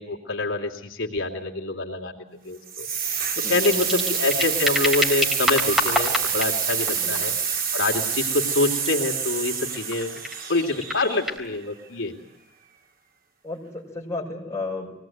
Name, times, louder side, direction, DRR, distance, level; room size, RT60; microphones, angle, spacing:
voice 1, 0.0-2.9 3.5-7.3 7.7-10.2 10.5-12.1, left 2 dB, 80° left, 0 dB, 2.8 m, -26 dB
sound 1, 2.7-11.5, right 7 dB, 45° right, 2.1 m, -27 dB
voice 2, 3.4-4.0 7.0-7.2 13.4-15.0, left 2 dB, 15° left, -5 dB, 6.2 m, -33 dB
sound 2, 3.4-11.4, left 1 dB, 5° right, 3.7 m, -31 dB
24.0 x 18.5 x 9.3 m, 0.85 s
head